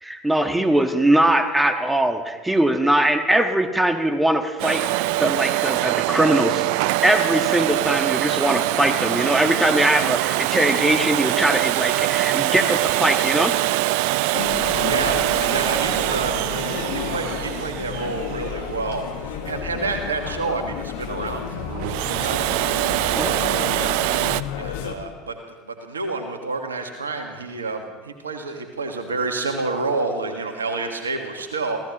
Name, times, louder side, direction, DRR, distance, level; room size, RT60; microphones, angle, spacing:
voice 1, 0.0-6.6 7.0-13.5 23.2-23.4, right 1 dB, 10° right, 7 dB, 1.5 m, -21 dB
Domestic sounds home sounds, 4.6-19.4 21.7-24.4, right 18 dB, 65° right, 0.4 m, -23 dB
sound 1, 14.3-24.9, left 8 dB, 70° left, 1.5 m, -31 dB
voice 2, 14.8-15.1 15.5-16.3 16.9-21.7 22.0-22.6 23.2-23.6 24.6-25.3 25.6-31.8, right 3 dB, 90° right, 5 dB, 1.6 m, -29 dB
27.0 x 16.5 x 3.0 m, 1.3 s
hypercardioid pair, 75°, 0 cm